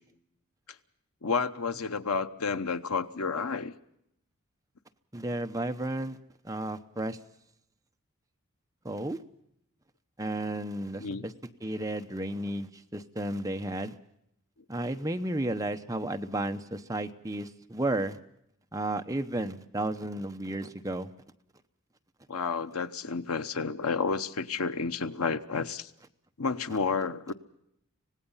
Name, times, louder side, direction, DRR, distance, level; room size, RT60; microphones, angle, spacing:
voice 1, 1.2-3.7 11.0-11.2 22.3-25.9 26.4-27.3, left 4 dB, 85° left, 11 dB, 1.0 m, -30 dB
voice 2, 5.1-6.2 6.4-7.2 8.8-9.2 10.2-11.3 11.6-13.9 14.7-18.2 18.7-21.1, right 1 dB, 15° right, 6 dB, 0.9 m, -33 dB
25.5 x 18.5 x 5.6 m, 0.76 s
head